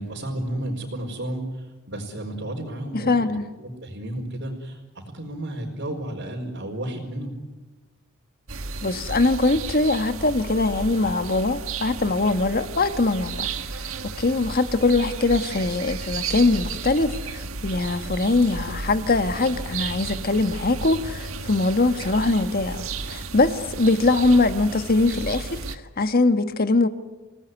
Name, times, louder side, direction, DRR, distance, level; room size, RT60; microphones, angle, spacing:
voice 1, 0.0-7.4, right 1 dB, 55° right, 4.6 m, -32 dB
voice 2, 2.9-3.5 8.8-13.9 14.2-26.9, left 2 dB, 45° left, 1.4 m, -22 dB
sound 1, 8.5-25.8, right 4 dB, 75° right, 1.7 m, -33 dB
29.5 x 19.0 x 9.6 m
head